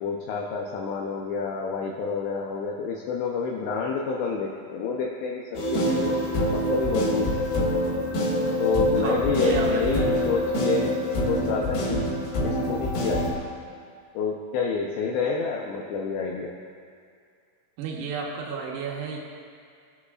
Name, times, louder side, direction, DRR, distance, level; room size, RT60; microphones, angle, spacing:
voice 1, 0.0-6.2 6.5-7.3 8.6-10.9 11.3-12.1 12.4-13.4 14.1-16.5, left 5 dB, 85° left, -1 dB, 2.5 m, -28 dB
sound 1, 5.5-13.3, equal, 60° left, 3.6 m, -25 dB
voice 2, 9.0-10.0 17.8-19.2, right 5 dB, 85° right, -2 dB, 4.0 m, -32 dB
21.5 x 8.2 x 2.4 m, 2.3 s
omnidirectional pair, 6.0 m